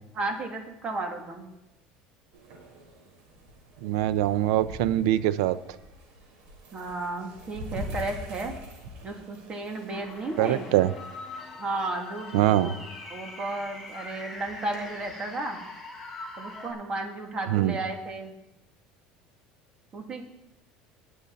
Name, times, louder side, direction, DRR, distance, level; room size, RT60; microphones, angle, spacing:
voice 1, 0.1-1.5 6.7-8.5 9.0-10.6 11.6-12.7 13.1-15.6 16.4-18.3 19.9-20.2, right 2 dB, 30° right, 3 dB, 2.5 m, -33 dB
sound 1, 2.3-15.1, equal, 65° right, 4.7 m, -45 dB
voice 2, 3.8-5.6 10.4-10.9 12.3-12.7 17.5-17.8, right 13 dB, 85° right, 15 dB, 0.6 m, -23 dB
sound 2, 9.9-16.7, left 2 dB, ahead, 4.9 m, -42 dB
19.0 x 7.2 x 4.2 m, 0.90 s
supercardioid pair, 115°, 3 cm